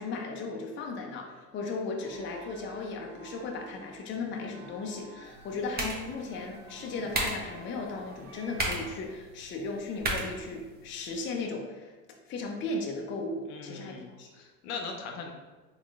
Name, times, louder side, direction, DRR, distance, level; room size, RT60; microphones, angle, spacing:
voice 1, 0.0-11.9 12.3-14.3, left 3 dB, 25° left, 1 dB, 0.5 m, -36 dB
sound 1, 2.0-8.9, right 2 dB, 85° right, 0.6 m, -50 dB
sound 2, 5.2-11.2, right 2 dB, 20° right, 0.7 m, -37 dB
voice 2, 13.5-15.3, left 5 dB, 70° left, 2 dB, 0.8 m, -40 dB
3.6 x 3.3 x 2.4 m, 1.2 s
hypercardioid pair, 80°, 45 cm